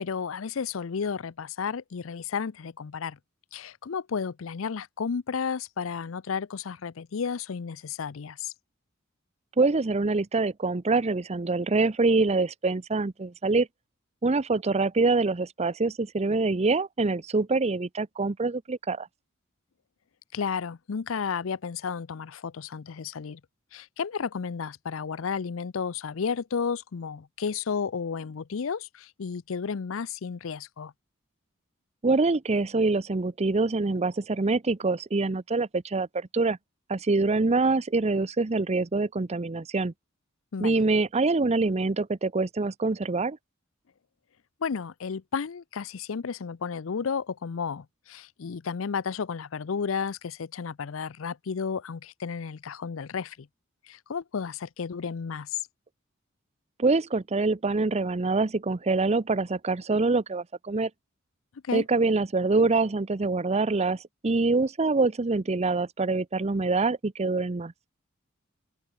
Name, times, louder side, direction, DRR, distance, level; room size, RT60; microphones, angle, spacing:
voice 1, 0.0-3.2 3.5-8.5 20.3-23.4 23.7-30.9 40.5-40.8 44.6-53.5 53.9-55.6 61.6-61.8, left 6 dB, 70° left, 0.5 m, -32 dB
voice 2, 9.6-13.7 14.2-19.1 32.0-36.6 36.9-39.9 40.6-43.4 56.8-60.9 61.7-64.0 64.2-67.7, right 3 dB, 30° right, 0.6 m, -25 dB
head